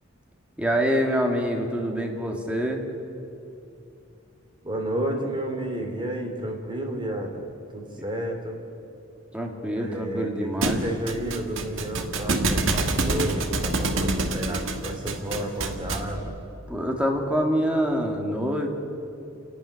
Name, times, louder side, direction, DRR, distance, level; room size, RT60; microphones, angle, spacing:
voice 1, 0.6-2.8 9.3-10.8 16.7-18.7, equal, 5° right, 1 dB, 2.2 m, -25 dB
voice 2, 4.6-7.5 7.7-8.6 9.8-10.5 10.8-16.3, right 1 dB, 25° right, 3 dB, 3.0 m, -31 dB
Thump thud, 10.6-16.2, right 2 dB, 70° right, 1.6 m, -27 dB
28.5 x 11.5 x 9.9 m, 2.7 s
head